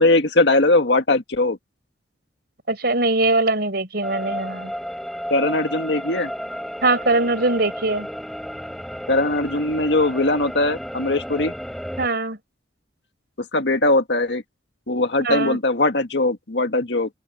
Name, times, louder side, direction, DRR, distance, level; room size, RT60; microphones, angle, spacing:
voice 1, 0.0-1.6 5.3-6.3 9.1-11.5 13.5-14.4 14.9-17.1, left 2 dB, 70° left, 1.9 m, -20 dB
voice 2, 2.7-4.7 6.8-8.1 12.0-12.4 15.2-15.6, right 2 dB, 60° right, 6.3 m, -21 dB
sound 1, 4.0-12.1, equal, ahead, 7.1 m, -33 dB
open air
head